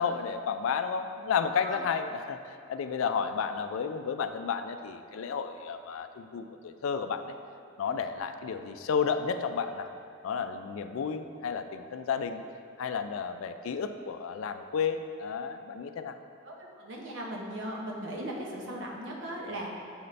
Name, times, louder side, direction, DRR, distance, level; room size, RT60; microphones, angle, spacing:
voice 1, 0.0-7.4 7.8-9.9 10.2-12.4 12.8-16.2, left 6 dB, 75° left, 9 dB, 0.3 m, -32 dB
voice 2, 16.4-19.7, right 1 dB, 60° right, -2 dB, 0.9 m, -38 dB
7.7 x 4.0 x 3.2 m, 2.5 s
head